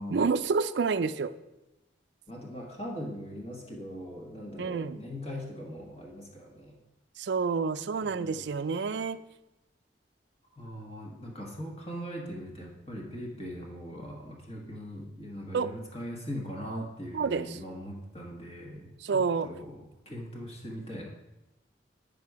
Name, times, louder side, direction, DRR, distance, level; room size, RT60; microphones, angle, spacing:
voice 1, 0.1-1.3 4.6-5.0 7.2-9.2 15.5-15.7 17.1-17.5 19.0-19.5, right 5 dB, 65° right, 14 dB, 0.4 m, -28 dB
voice 2, 2.3-6.8 8.0-8.9 10.6-21.1, equal, 30° left, -2 dB, 1.3 m, -40 dB
9.3 x 5.3 x 4.7 m, 0.95 s
head